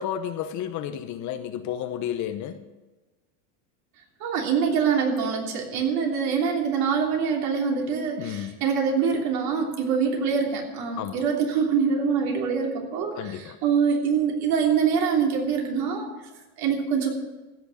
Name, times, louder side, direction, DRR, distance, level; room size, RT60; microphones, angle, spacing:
voice 1, 0.0-2.6 8.2-8.5 11.0-11.2 13.2-13.6, left 10 dB, 40° left, 9 dB, 0.9 m, -31 dB
voice 2, 4.2-16.1 16.6-17.1, right 6 dB, 55° right, 0 dB, 3.3 m, -24 dB
15.5 x 6.1 x 8.6 m, 1.1 s
supercardioid pair, 140°, 44 cm